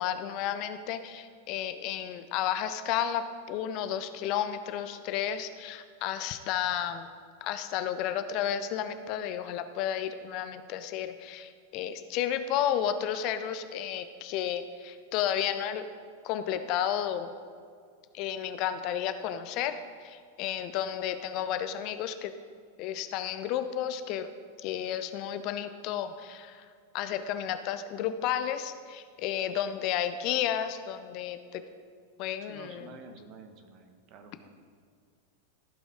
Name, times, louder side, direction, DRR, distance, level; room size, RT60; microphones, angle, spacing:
voice 1, 0.0-7.1 7.4-15.9 16.2-17.3 18.1-22.3 22.8-24.3 24.6-26.7 26.9-31.6 32.2-32.9, left 10 dB, 40° left, 10 dB, 0.5 m, -32 dB
voice 2, 32.4-34.5, right 4 dB, 40° right, 6 dB, 1.1 m, -50 dB
15.0 x 5.9 x 3.6 m, 2.1 s
figure-of-eight pair, 90°, 0 cm